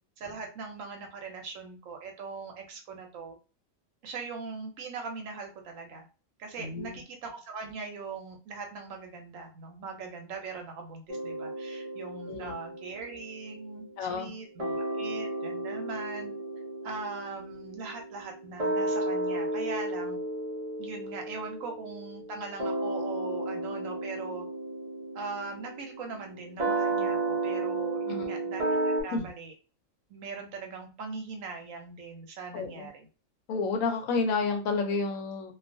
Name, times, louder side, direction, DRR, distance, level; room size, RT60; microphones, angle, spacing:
voice 1, 0.2-3.3 4.0-6.0 6.4-16.3 16.8-20.2 20.8-24.5 25.1-29.5 30.1-33.1, right 4 dB, 75° right, 3 dB, 1.0 m, -40 dB
voice 2, 6.6-7.0 12.3-12.5 14.0-14.3 28.1-28.3 29.1-29.3 32.5-32.9 33.5-35.5, left 4 dB, 85° left, 5 dB, 1.0 m, -30 dB
sound 1, 11.1-14.3 14.6-29.0, right 2 dB, 35° right, 0.6 m, -33 dB
2.4 x 2.3 x 2.5 m, 0.33 s
omnidirectional pair, 1.4 m